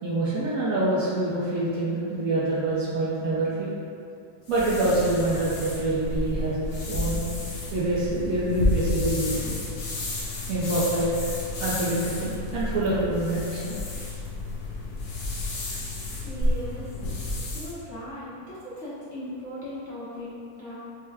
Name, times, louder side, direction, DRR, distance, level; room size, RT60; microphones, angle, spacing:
voice 1, 0.0-3.7 4.5-7.2 7.7-9.5 10.5-11.1 11.6-13.7, right 2 dB, 60° right, -8 dB, 1.1 m, -26 dB
sound 1, 4.5-17.8, left 1 dB, 75° left, 1.4 m, -31 dB
voice 2, 16.2-16.9 17.5-20.7, equal, 50° left, -10 dB, 1.0 m, -38 dB
5.6 x 2.2 x 3.4 m, 2.5 s
omnidirectional pair, 1.9 m